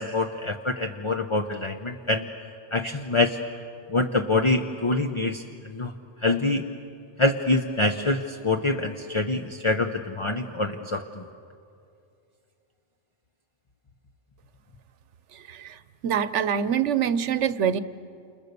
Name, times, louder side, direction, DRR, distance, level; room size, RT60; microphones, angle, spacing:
voice 1, 0.0-2.3 2.7-3.4 3.9-5.9 6.2-6.6 7.2-11.2, left 2 dB, 30° left, 5 dB, 0.9 m, -25 dB
voice 2, 16.0-17.8, right 8 dB, 80° right, 14 dB, 1.1 m, -24 dB
29.5 x 28.5 x 6.8 m, 2.5 s
omnidirectional pair, 1.2 m